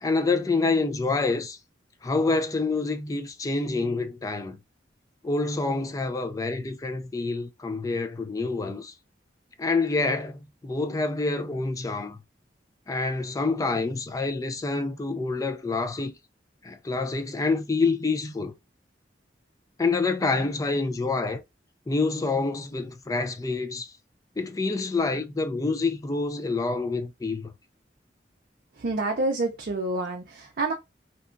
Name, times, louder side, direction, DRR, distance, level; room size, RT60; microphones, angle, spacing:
voice 1, 0.0-1.6 2.0-4.6 5.2-8.9 9.6-12.2 12.9-16.1 16.6-18.5 19.8-21.4 21.9-23.9 24.4-27.5, left 3 dB, 20° left, 0.3 m, -27 dB
voice 2, 28.8-30.7, right 2 dB, 55° right, 0.5 m, -28 dB
2.8 x 2.3 x 2.4 m
head